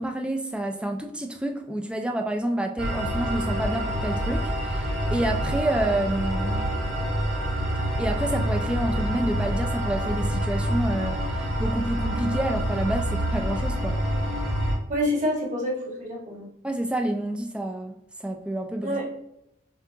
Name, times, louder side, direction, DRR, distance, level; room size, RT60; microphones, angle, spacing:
voice 1, 0.0-6.8 8.0-14.0 16.6-19.0, right 1 dB, 5° right, 4 dB, 0.4 m, -29 dB
sound 1, 2.8-14.8, equal, 80° right, 1.5 m, -27 dB
voice 2, 14.9-16.5 18.8-19.0, equal, 40° right, -4 dB, 1.6 m, -27 dB
7.1 x 2.4 x 2.8 m, 0.78 s
head